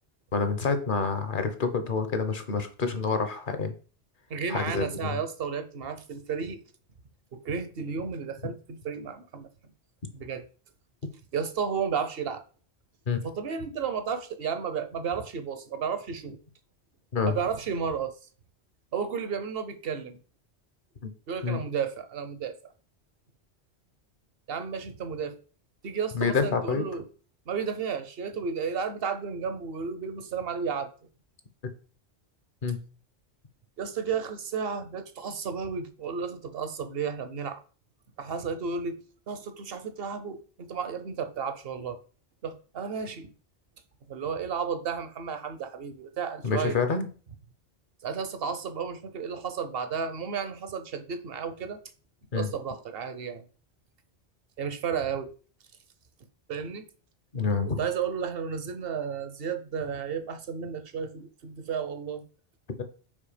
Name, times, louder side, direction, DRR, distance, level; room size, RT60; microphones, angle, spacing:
voice 1, 0.3-3.7 4.5-5.2 13.1-13.2 17.1-17.3 21.4-21.6 26.1-26.9 32.6-32.8 46.4-47.1 52.3-52.5 57.3-57.8 62.8-62.9, left 5 dB, 50° left, 1.0 m, -27 dB
voice 2, 4.3-6.6 7.3-9.5 10.1-10.5 11.3-12.4 13.2-16.4 17.3-18.1 18.9-20.2 21.3-22.7 24.5-25.4 25.8-27.1 27.5-30.9 33.8-37.6 38.2-42.0 42.4-43.3 44.1-46.8 48.0-51.8 52.3-53.4 54.6-55.3 56.5-56.8 57.6-62.2, right 6 dB, 60° right, 1.0 m, -33 dB
5.6 x 4.6 x 5.0 m
omnidirectional pair, 1.1 m